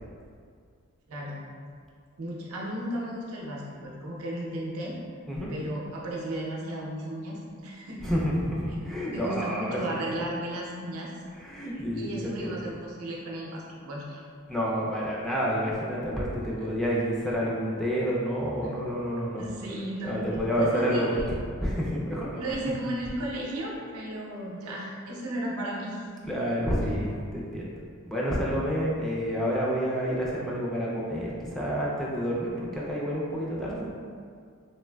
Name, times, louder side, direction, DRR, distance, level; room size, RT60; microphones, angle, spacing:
voice 1, 1.1-1.5 2.2-5.0 5.5-8.1 8.7-8.8 9.1-11.1 12.0-14.2 16.4-16.7 18.6-18.7 19.4-20.2 20.6-21.3 22.4-26.1 26.8-26.9, right 1 dB, 90° right, -3 dB, 0.6 m, -35 dB
voice 2, 8.0-10.2 11.4-12.6 14.5-19.4 20.0-21.2 21.6-22.4 26.3-27.7 28.1-33.9, equal, ahead, -6 dB, 0.3 m, -29 dB
3.2 x 2.5 x 2.2 m, 2.2 s
head